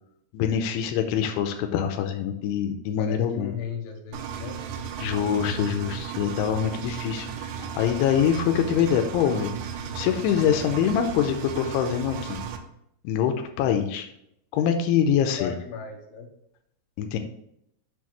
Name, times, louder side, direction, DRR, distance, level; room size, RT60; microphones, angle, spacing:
voice 1, 0.3-3.5 5.0-12.4 13.0-14.1 14.5-15.5 17.0-17.2, left 8 dB, 90° left, 5 dB, 3.1 m, -25 dB
voice 2, 3.0-4.6 15.4-16.3, left 7 dB, 70° left, 1 dB, 3.0 m, -36 dB
Engine, 4.1-12.6, right 7 dB, 80° right, 2.9 m, -35 dB
8.4 x 6.7 x 3.1 m, 0.76 s
omnidirectional pair, 5.4 m